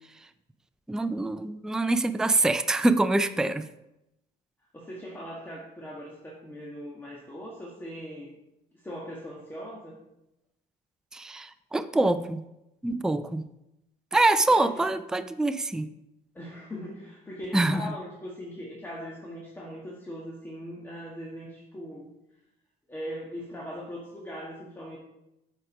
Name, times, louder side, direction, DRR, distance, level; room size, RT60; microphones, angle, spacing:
voice 1, 0.9-3.7 11.1-12.4 12.8-13.5 14.1-15.9 17.5-17.9, right 2 dB, 5° right, 11 dB, 0.4 m, -25 dB
voice 2, 4.7-8.3 8.8-10.0 14.5-14.8 16.3-22.1 22.9-25.0, equal, 10° left, -3 dB, 1.5 m, -40 dB
7.6 x 4.8 x 6.1 m, 0.89 s
cardioid pair, 110°, 17 cm